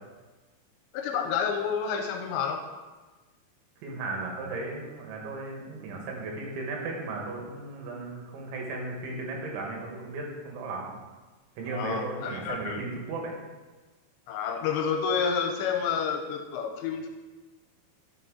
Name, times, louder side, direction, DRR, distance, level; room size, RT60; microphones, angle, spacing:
voice 1, 0.9-2.6 11.7-12.8 14.3-17.1, left 6 dB, 80° left, 5 dB, 2.8 m, -29 dB
voice 2, 3.8-10.9 11.6-13.3, right 3 dB, 80° right, 0 dB, 3.8 m, -35 dB
11.0 x 6.1 x 3.8 m, 1.3 s
omnidirectional pair, 5.3 m